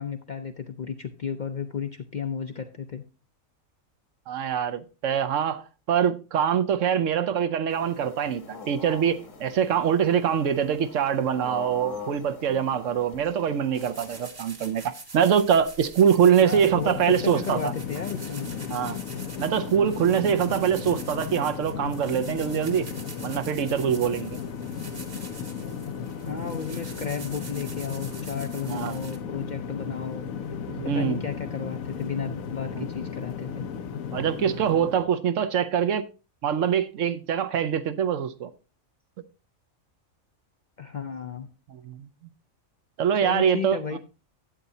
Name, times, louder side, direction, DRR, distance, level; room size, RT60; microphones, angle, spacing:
voice 1, 0.0-3.0 16.4-18.7 26.3-30.2 30.8-33.7 40.8-41.5 43.2-44.0, left 6 dB, 50° left, 0.5 m, -33 dB
voice 2, 4.3-17.7 18.7-19.0 19.4-22.9 23.2-24.4 28.6-29.0 30.7-31.2 32.8-32.9 34.1-36.1 36.4-38.5 41.7-42.1 43.0-44.0, right 8 dB, 70° right, 1.0 m, -24 dB
sound 1, 7.7-14.3, left 3 dB, 65° left, 1.6 m, -43 dB
sound 2, 13.7-29.2, right 3 dB, 45° right, 1.5 m, -45 dB
sound 3, 16.5-35.1, left 7 dB, 85° left, 1.1 m, -35 dB
11.5 x 8.1 x 2.7 m
omnidirectional pair, 1.4 m